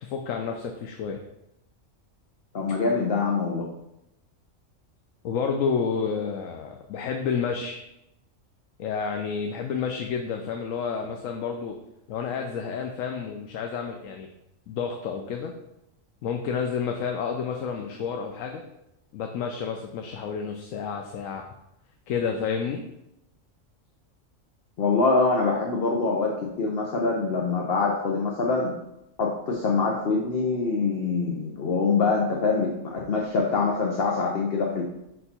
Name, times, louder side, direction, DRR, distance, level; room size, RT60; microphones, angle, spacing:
voice 1, 0.0-1.2 5.2-7.8 8.8-11.8 12.1-14.3 14.7-15.5 16.2-18.6 19.1-21.4 22.1-22.8, left 6 dB, 85° left, 3 dB, 1.0 m, -30 dB
voice 2, 2.5-3.6 24.8-26.3 26.6-28.7 29.2-34.8, left 4 dB, 55° left, -1 dB, 0.9 m, -24 dB
5.4 x 4.4 x 4.2 m, 0.86 s
omnidirectional pair, 1.3 m